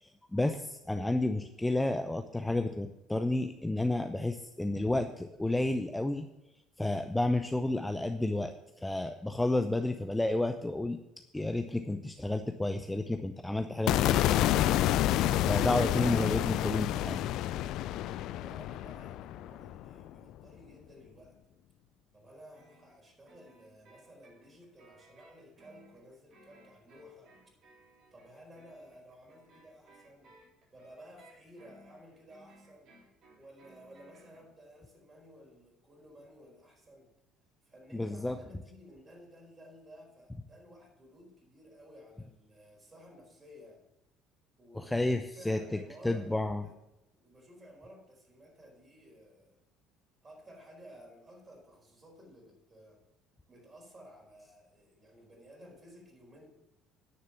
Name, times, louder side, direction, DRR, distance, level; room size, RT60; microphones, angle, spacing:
voice 1, 0.0-6.3 6.8-8.5 8.8-11.0 11.3-14.3 15.5-17.2 37.9-38.4 44.7-46.6, left 2 dB, 10° left, 8 dB, 0.6 m, -31 dB
sound 1, 13.9-20.1, left 13 dB, 60° left, 0.3 m, -29 dB
voice 2, 18.4-21.4 22.1-27.4 28.1-30.3 30.7-33.0 33.4-37.1 37.6-43.9 44.6-46.7 47.2-49.6 50.2-53.0 53.5-56.5, equal, 30° right, 1 dB, 4.5 m, -55 dB
sound 2, 22.5-34.5, right 2 dB, 50° right, 3.6 m, -60 dB
10.0 x 6.7 x 7.1 m, 0.92 s
hypercardioid pair, 60°, 0 cm